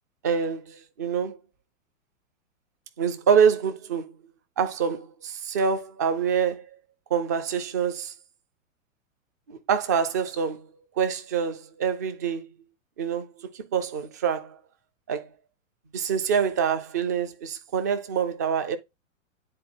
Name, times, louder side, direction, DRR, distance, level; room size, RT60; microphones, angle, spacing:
voice 1, 0.2-1.4 3.0-4.1 4.6-6.7 7.1-8.1 9.5-10.7 11.0-12.5 13.0-13.3 13.5-14.6 15.1-15.3 15.9-18.8, right 7 dB, 15° right, 0.3 m, -26 dB
9.7 x 4.2 x 2.8 m
figure-of-eight pair, 110°, 41 cm